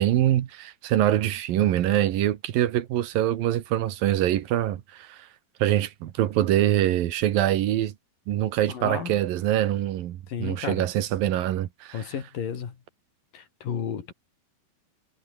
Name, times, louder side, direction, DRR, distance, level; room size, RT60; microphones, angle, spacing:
voice 1, 0.0-5.3 5.6-7.9 8.3-12.0, right 12 dB, 80° right, 3.2 m, -24 dB
voice 2, 8.7-9.1 10.3-10.9 11.9-12.8 13.3-14.1, left 8 dB, 75° left, 4.6 m, -32 dB
omnidirectional pair, 4.0 m